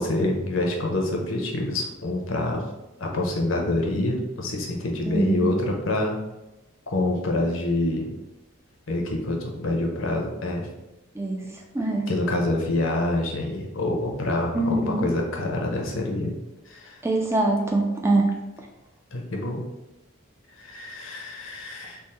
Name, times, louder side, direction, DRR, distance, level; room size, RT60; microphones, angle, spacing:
voice 1, 0.0-2.6 3.0-6.2 6.9-8.1 8.9-10.7 12.1-16.3 16.7-17.0 19.1-19.6 20.6-22.0, left 2 dB, 65° left, 1 dB, 0.7 m, -26 dB
voice 2, 5.1-5.5 11.2-11.5 11.7-12.1 14.5-15.1 17.0-18.3, right 2 dB, 10° right, 0 dB, 0.3 m, -23 dB
3.5 x 2.1 x 4.2 m, 0.97 s
head